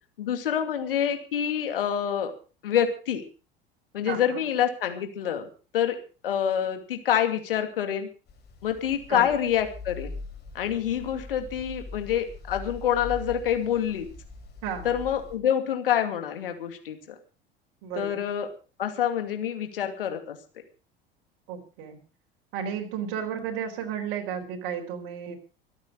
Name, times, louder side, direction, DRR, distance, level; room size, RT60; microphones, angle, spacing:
voice 1, 0.2-2.3 2.6-3.2 3.9-5.5 5.7-6.0 6.2-8.1 8.6-10.1 10.5-14.1 14.8-17.2 18.0-18.5 18.8-20.4, left 9 dB, 70° left, 7 dB, 2.6 m, -27 dB
voice 2, 4.1-4.4 9.1-9.3 14.6-15.0 17.8-18.2 21.5-22.0 22.5-25.4, right 8 dB, 50° right, 3 dB, 4.4 m, -33 dB
sound 1, 8.3-15.4, left 3 dB, 35° left, 5.0 m, -42 dB
25.0 x 8.9 x 5.1 m, 0.36 s
figure-of-eight pair, 70°, 29 cm